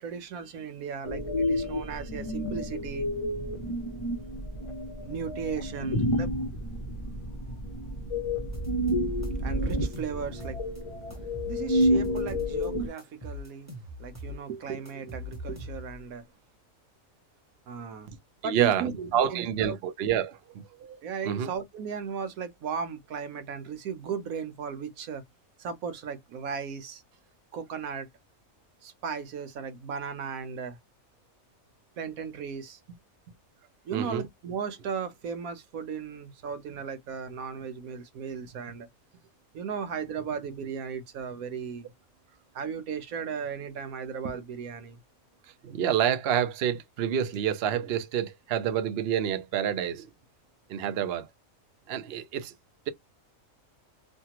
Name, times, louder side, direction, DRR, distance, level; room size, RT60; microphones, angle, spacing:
voice 1, 0.0-3.1 5.0-6.3 9.4-10.6 11.5-13.7 14.0-16.2 17.7-18.1 18.4-19.8 21.0-25.2 25.6-27.0 27.5-28.1 28.8-30.8 32.0-33.0 33.8-38.9 39.5-41.9 42.5-45.0, right 6 dB, 90° right, 1.2 m, -36 dB
sound 1, 1.0-12.9, equal, 30° left, 0.7 m, -30 dB
sound 2, 8.5-8.9 9.2-10.8 11.1-12.7 13.0-16.1, left 2 dB, 15° right, 1.0 m, -41 dB
voice 2, 18.4-21.5 33.9-34.2 45.6-50.1 50.7-51.3 51.9-52.5, right 9 dB, 55° right, 0.8 m, -28 dB
3.3 x 2.2 x 2.8 m
omnidirectional pair, 1.4 m